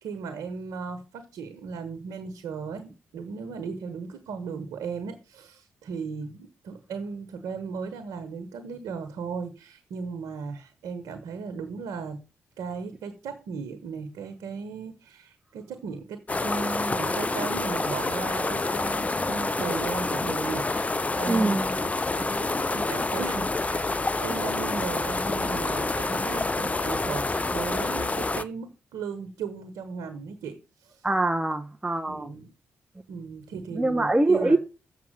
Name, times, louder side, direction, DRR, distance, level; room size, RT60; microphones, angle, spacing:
voice 1, 0.0-12.2 12.6-23.8 24.2-30.6 30.8-31.0 32.1-32.5 33.1-34.6, right 5 dB, 80° right, 1.2 m, -36 dB
sound 1, 16.3-28.4, left 3 dB, 25° left, 0.6 m, -28 dB
voice 2, 21.3-21.7 31.0-32.3 33.7-34.6, right 2 dB, 15° right, 0.9 m, -23 dB
7.4 x 5.9 x 7.5 m
hypercardioid pair, 45°, 6 cm